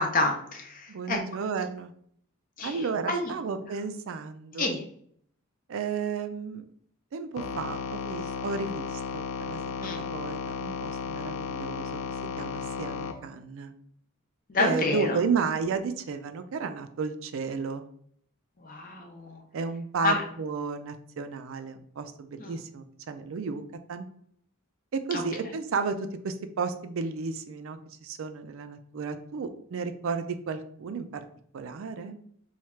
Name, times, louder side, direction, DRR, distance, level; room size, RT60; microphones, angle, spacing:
voice 1, 0.0-1.2 2.6-3.3 4.6-4.8 9.8-10.0 14.5-15.2 18.6-19.4 20.0-20.2 22.4-22.6 25.1-25.2, left 2 dB, 40° left, 3 dB, 0.7 m, -29 dB
voice 2, 0.9-1.9 2.6-4.8 5.7-6.6 7.1-12.0 12.4-13.7 14.6-17.8 19.5-23.6 23.9-24.1 24.9-26.0 26.2-31.2 31.5-32.2, right 5 dB, 65° right, 9 dB, 0.4 m, -33 dB
sound 1, 7.4-13.1, left 5 dB, 75° left, 0.5 m, -34 dB
3.1 x 2.4 x 4.3 m, 0.63 s
head